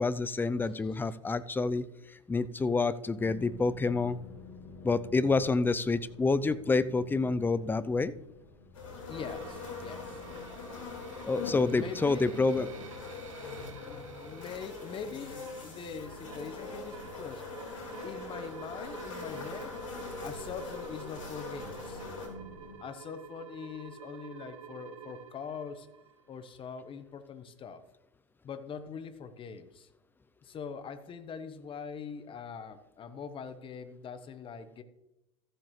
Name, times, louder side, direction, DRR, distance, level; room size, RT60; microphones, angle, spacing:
voice 1, 0.0-1.9 2.3-4.2 4.8-8.1 11.2-12.7, left 3 dB, 10° left, 15 dB, 0.5 m, -28 dB
sound 1, 3.2-22.8, left 2 dB, 65° left, 2.9 m, -51 dB
sound 2, 8.7-22.3, left 4 dB, 85° left, 3.4 m, -42 dB
voice 2, 9.1-10.2 11.7-12.5 13.8-17.4 18.0-19.8 20.2-22.0 22.8-25.9 26.3-27.8 28.4-29.9 30.4-34.8, left 6 dB, 35° left, 11 dB, 1.2 m, -43 dB
sound 3, 9.1-27.0, right 7 dB, 85° right, 1.1 m, -51 dB
14.5 x 7.8 x 3.2 m, 0.92 s
hypercardioid pair, 90°, 16 cm